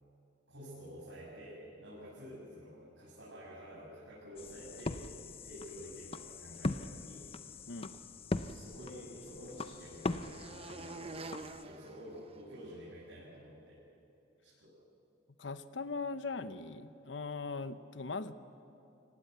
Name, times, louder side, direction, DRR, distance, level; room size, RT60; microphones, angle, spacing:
voice 1, 0.5-5.0 5.4-7.3 8.4-11.3 11.6-13.8 14.4-14.8, equal, 80° right, -8 dB, 7.4 m, -50 dB
sound 1, 4.4-11.6, left 2 dB, 30° left, 0.6 m, -41 dB
voice 2, 7.7-8.0 15.4-18.3, left 4 dB, 70° left, 12 dB, 0.9 m, -40 dB
sound 2, 8.6-12.9, right 3 dB, 30° right, 0.8 m, -49 dB
25.0 x 18.5 x 8.2 m, 2.9 s
head